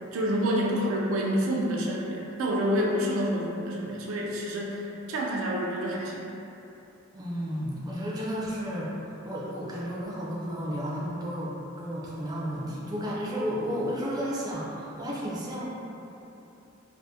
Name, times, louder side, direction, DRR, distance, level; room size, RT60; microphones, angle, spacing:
voice 1, 0.1-6.3, equal, 80° right, -2 dB, 0.4 m, -28 dB
voice 2, 7.1-15.7, equal, 20° right, -7 dB, 0.5 m, -32 dB
3.5 x 2.1 x 2.7 m, 2.9 s
head